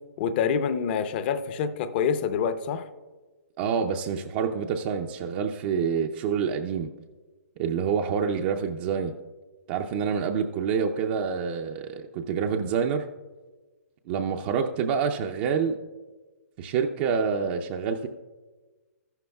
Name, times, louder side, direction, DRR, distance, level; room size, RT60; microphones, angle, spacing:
voice 1, 0.2-2.9, left 7 dB, 40° left, 11 dB, 0.7 m, -26 dB
voice 2, 3.6-6.9 7.6-9.1 9.7-13.1 14.1-15.8 16.6-18.1, right 6 dB, 35° right, 3 dB, 0.5 m, -27 dB
14.0 x 11.5 x 2.3 m, 1.3 s
hypercardioid pair, 145°, 9 cm